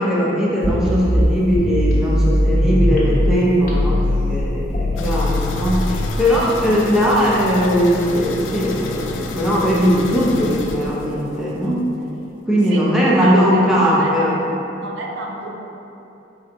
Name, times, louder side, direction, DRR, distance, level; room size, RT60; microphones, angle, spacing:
voice 1, 0.0-11.8 12.5-14.3, equal, 5° right, -7 dB, 0.4 m, -19 dB
sound 1, 0.6-3.3 3.7-6.1, left 1 dB, 45° left, 0.7 m, -19 dB
sound 2, 5.0-11.6 11.9-12.0 12.4-12.5, left 3 dB, 80° left, 0.3 m, -30 dB
voice 2, 12.7-14.4 14.8-15.5, right 1 dB, 65° right, -2 dB, 0.5 m, -30 dB
4.2 x 4.0 x 2.5 m, 2.9 s
head